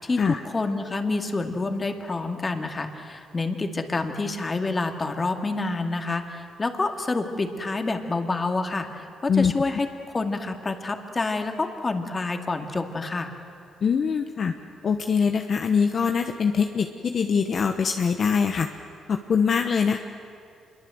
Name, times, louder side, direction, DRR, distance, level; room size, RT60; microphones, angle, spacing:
voice 1, 0.0-13.3, left 3 dB, 25° left, 5 dB, 2.3 m, -28 dB
voice 2, 13.8-14.5 14.8-18.7 19.1-20.0, left 6 dB, 50° left, 5 dB, 1.1 m, -23 dB
26.5 x 22.5 x 7.9 m, 2.5 s
cardioid pair, 90°, 0 cm